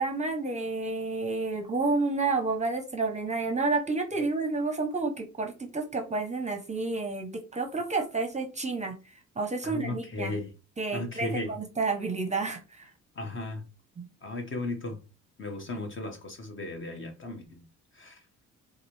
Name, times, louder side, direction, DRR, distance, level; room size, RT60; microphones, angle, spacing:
voice 1, 0.0-8.9 9.4-10.3 10.8-12.6 14.0-14.1, right 3 dB, 25° right, 0.7 m, -30 dB
voice 2, 9.6-10.5 10.9-11.6 13.1-13.6 14.2-15.0 15.4-17.6 17.9-18.2, left 2 dB, 40° left, 1.3 m, -35 dB
4.5 x 2.4 x 3.1 m
cardioid pair, 90°, 30 cm